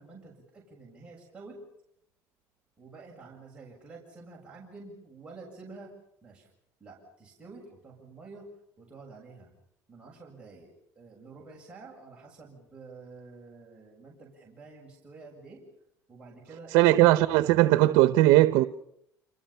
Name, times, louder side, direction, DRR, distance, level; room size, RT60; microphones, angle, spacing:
voice 1, 0.0-1.6 2.8-5.9 6.2-6.5 6.8-8.5 8.8-9.5 9.9-15.6 16.1-16.9, right 3 dB, 15° right, 7.5 m, -49 dB
voice 2, 16.7-18.6, right 16 dB, 90° right, 0.9 m, -19 dB
29.0 x 28.0 x 5.8 m
cardioid pair, 135°, 7 cm